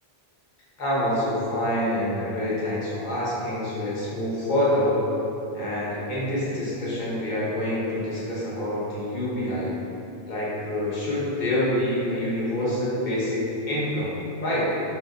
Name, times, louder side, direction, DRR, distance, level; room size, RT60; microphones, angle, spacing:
voice 1, 0.8-5.0 5.5-9.7 10.3-14.2 14.4-14.7, left 1 dB, 50° left, -8 dB, 0.9 m, -26 dB
3.4 x 2.9 x 2.4 m, 2.9 s
omnidirectional pair, 1.1 m